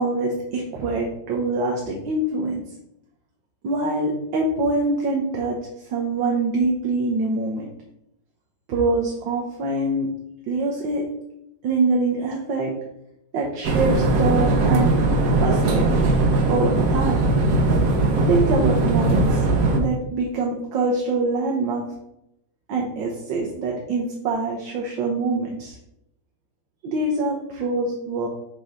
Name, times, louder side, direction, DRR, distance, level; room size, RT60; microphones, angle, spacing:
voice 1, 0.0-2.6 3.6-5.6 5.9-7.7 8.7-10.1 10.5-11.0 11.6-12.7 13.3-14.9 15.4-16.1 16.5-17.2 18.3-19.4 19.7-21.8 22.7-25.8 26.8-28.3, right 3 dB, 80° right, -1 dB, 1.7 m, -24 dB
sound 1, 13.6-19.8, right 2 dB, 55° right, 1.2 m, -19 dB
5.3 x 3.8 x 5.7 m, 0.82 s
omnidirectional pair, 2.0 m